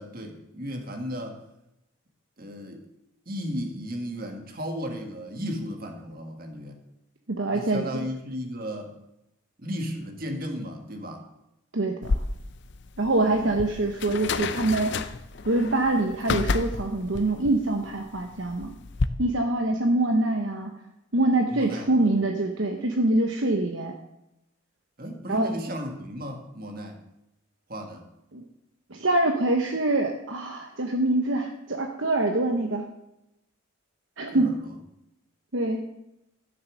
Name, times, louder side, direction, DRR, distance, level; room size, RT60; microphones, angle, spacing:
voice 1, 0.0-1.4 2.4-2.8 3.3-6.8 7.5-8.9 9.6-11.3 13.2-13.5 21.5-22.1 25.0-27.0 27.7-28.1 34.3-34.7, equal, 45° right, 4 dB, 1.8 m, -35 dB
voice 2, 7.3-8.0 11.7-12.2 13.0-15.1 15.4-18.7 19.2-20.7 21.1-23.9 25.3-25.5 28.3-28.4 28.9-32.9 34.2-34.6 35.5-35.8, right 2 dB, 60° right, 3 dB, 1.0 m, -25 dB
sound 1, 12.0-19.1, left 3 dB, 55° left, 0.6 m, -31 dB
13.0 x 7.2 x 6.3 m, 0.86 s
head